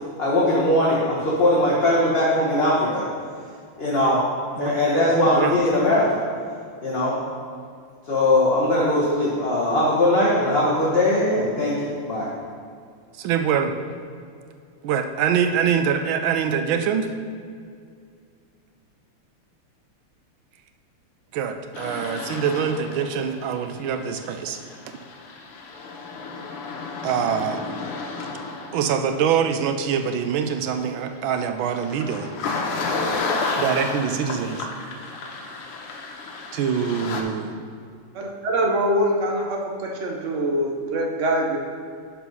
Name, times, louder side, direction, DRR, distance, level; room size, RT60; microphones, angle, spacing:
voice 1, 0.2-3.0 3.8-4.2 4.6-6.2 6.8-7.2 8.1-12.3, left 1 dB, 35° left, -6 dB, 1.2 m, -20 dB
voice 2, 13.2-13.8 14.8-17.1 21.3-24.6 27.0-27.6 28.7-32.3 33.6-34.6 36.5-37.6, right 7 dB, 75° right, 7 dB, 1.3 m, -24 dB
sound 1, 21.7-37.2, left 3 dB, 90° left, 1.9 m, -32 dB
voice 3, 38.1-41.6, right 1 dB, 90° right, 0 dB, 0.6 m, -24 dB
10.5 x 4.4 x 5.5 m, 2.3 s
omnidirectional pair, 2.4 m